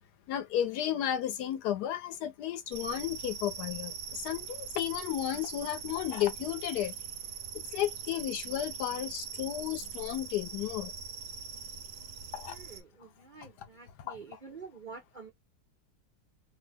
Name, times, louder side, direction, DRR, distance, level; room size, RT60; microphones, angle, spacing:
voice 1, 0.3-6.9 7.7-10.9 12.3-12.6 13.4-13.5 14.1-14.4, left 11 dB, 75° left, 1.1 m, -33 dB
sound 1, 2.7-12.8, right 7 dB, 75° right, 1.2 m, -42 dB
voice 2, 12.5-15.3, right 5 dB, 55° right, 0.5 m, -48 dB
3.3 x 2.1 x 3.3 m
omnidirectional pair, 1.9 m